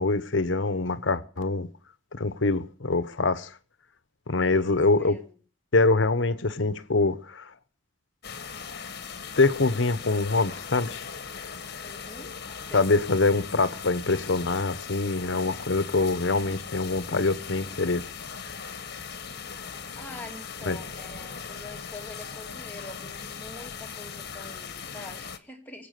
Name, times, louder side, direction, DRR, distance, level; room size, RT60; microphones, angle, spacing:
voice 1, 0.0-1.7 2.1-3.5 4.3-5.2 5.7-7.5 9.4-11.0 12.7-18.0 20.7-20.8, left 3 dB, 80° left, 1.1 m, -24 dB
voice 2, 4.4-5.4 11.8-12.4 12.7-12.9 19.9-25.9, left 2 dB, 10° left, 2.7 m, -45 dB
sound 1, 8.2-25.4, left 6 dB, 60° left, 1.4 m, -39 dB
23.5 x 8.6 x 6.7 m
head